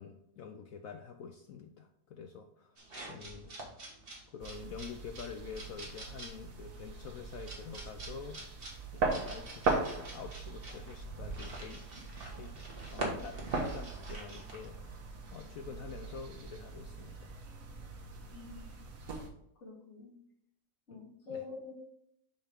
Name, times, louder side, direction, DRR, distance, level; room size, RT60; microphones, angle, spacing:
voice 1, 0.0-2.8 3.1-3.5 4.3-8.4 8.9-11.8 12.3-14.8 15.3-17.3 20.9-21.0 21.3-21.4, left 6 dB, 70° left, 5 dB, 0.8 m, -47 dB
sound 1, 2.8-14.6, right 2 dB, 35° right, 1.6 m, -45 dB
sound 2, 4.4-19.3, right 3 dB, 55° right, 1.4 m, -40 dB
voice 2, 18.3-18.7 19.6-20.1 20.9-21.7, left 5 dB, 40° left, -8 dB, 3.3 m, -46 dB
5.5 x 4.5 x 5.0 m, 0.75 s
omnidirectional pair, 1.9 m